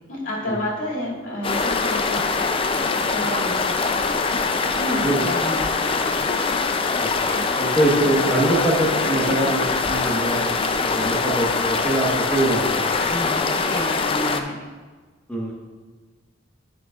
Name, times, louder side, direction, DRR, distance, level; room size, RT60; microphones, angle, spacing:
voice 1, 0.1-4.2 4.7-6.2 7.3-7.5 13.1-14.5, equal, 75° left, -6 dB, 2.4 m, -30 dB
sound 1, 1.4-14.4, left 4 dB, 25° left, 0.4 m, -23 dB
voice 2, 7.5-10.5 10.8-13.0 15.3-15.5, right 1 dB, 5° left, -5 dB, 1.2 m, -23 dB
10.5 x 6.2 x 2.4 m, 1.4 s
head